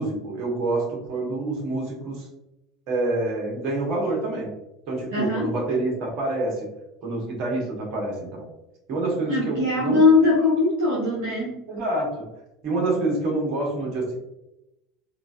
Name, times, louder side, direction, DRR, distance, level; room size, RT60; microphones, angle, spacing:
voice 1, 0.0-2.2 2.9-4.5 4.9-6.7 7.0-8.4 8.9-10.0 11.7-12.3 12.6-14.1, right 2 dB, 50° right, -1 dB, 1.2 m, -27 dB
voice 2, 5.1-5.5 9.3-11.7, left 3 dB, 65° right, -6 dB, 0.9 m, -21 dB
3.8 x 2.5 x 2.4 m, 0.89 s
figure-of-eight pair, 75°, 0 cm